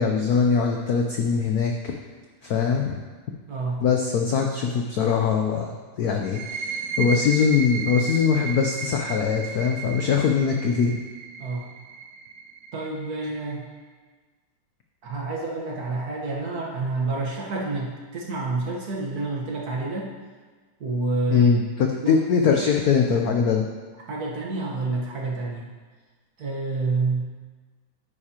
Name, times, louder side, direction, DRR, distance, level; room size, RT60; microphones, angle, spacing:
voice 1, 0.0-1.9 2.4-3.0 3.8-5.7 6.0-11.0 21.3-23.6, left 6 dB, 85° left, 2 dB, 0.8 m, -22 dB
voice 2, 3.5-3.8 11.4-11.7 12.7-13.7 15.0-20.1 20.8-21.5 22.0-22.2 24.1-25.7 26.4-27.2, right 3 dB, 50° right, -2 dB, 1.5 m, -28 dB
sound 1, 6.2-13.6, right 5 dB, 75° right, 1.0 m, -34 dB
9.7 x 9.5 x 2.9 m, 1.4 s
omnidirectional pair, 2.4 m